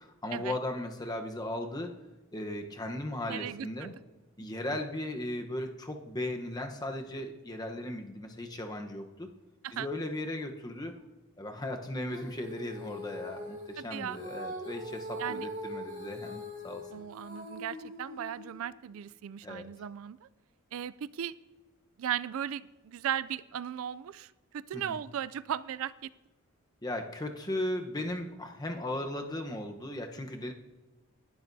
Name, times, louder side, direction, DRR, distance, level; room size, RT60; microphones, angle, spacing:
voice 1, 0.0-2.0 2.3-3.9 4.4-9.3 9.7-11.0 11.4-16.9 19.4-19.7 24.7-25.0 26.8-30.5, left 1 dB, 20° left, 4 dB, 0.9 m, -37 dB
voice 2, 3.3-3.9 9.6-9.9 13.8-14.2 15.2-15.5 16.9-20.3 20.7-21.4 22.0-26.1, right 9 dB, 70° right, 17 dB, 0.3 m, -37 dB
Female singing, 12.1-18.6, equal, 40° right, 4.0 m, -42 dB
19.0 x 12.0 x 2.7 m, 1.1 s
head